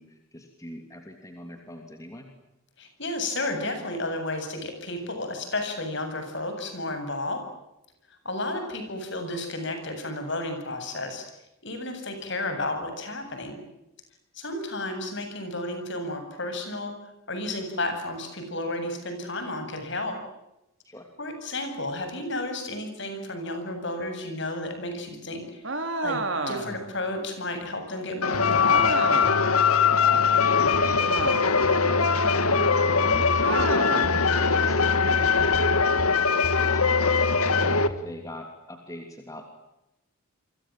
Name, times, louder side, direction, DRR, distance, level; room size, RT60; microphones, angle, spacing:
voice 1, 0.0-2.3 20.8-21.1 29.6-31.3 31.7-37.0 37.6-39.5, left 1 dB, 15° left, 4 dB, 2.9 m, -42 dB
voice 2, 2.8-7.4 8.1-11.3 11.6-13.6 14.3-16.9 17.3-20.2 21.2-25.6 26.0-29.0, left 2 dB, 55° left, 7 dB, 7.8 m, -32 dB
sound 1, 25.6-26.9 28.7-29.5 31.1-31.7 33.4-34.2, right 3 dB, 55° right, 3.6 m, -30 dB
sound 2, 28.2-37.9, left 5 dB, 85° left, 1.8 m, -22 dB
sound 3, 28.3-28.9 29.2-31.3 31.6-33.7 34.0-36.1 36.4-37.9, equal, 80° right, 5.4 m, -32 dB
29.5 x 25.0 x 7.6 m, 0.89 s
head